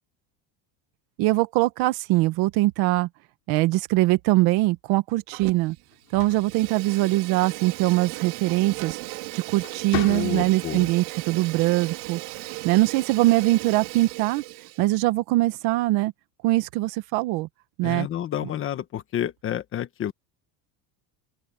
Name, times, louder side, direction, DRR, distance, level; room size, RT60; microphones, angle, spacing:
voice 1, 1.2-3.1 3.5-5.8 6.1-12.2 12.6-14.4 14.8-16.1 16.4-17.5 17.8-18.1, right 18 dB, 55° right, 1.4 m, -22 dB
Fire, 5.3-5.8 6.1-14.9, right 24 dB, 75° right, 3.1 m, -37 dB
sound 1, 5.9-7.5 8.9-9.2 9.6-10.8, left 25 dB, 75° left, 3.9 m, -36 dB
voice 2, 10.0-10.9 17.8-20.1, left 11 dB, 30° left, 1.2 m, -30 dB
open air
cardioid pair, 175°, 44 cm